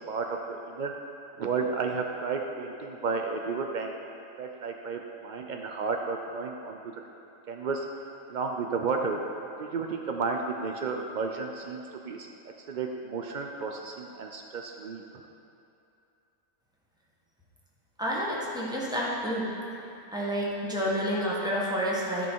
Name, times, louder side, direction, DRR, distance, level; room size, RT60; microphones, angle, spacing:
voice 1, 0.1-0.9 1.4-3.9 4.4-6.8 7.5-7.9 8.3-9.2 9.6-12.3 12.7-15.0, right 4 dB, 85° right, 2 dB, 0.4 m, -32 dB
voice 2, 18.0-19.5 20.1-22.3, equal, 5° right, -6 dB, 1.4 m, -29 dB
13.0 x 5.4 x 4.6 m, 2.7 s
omnidirectional pair, 1.5 m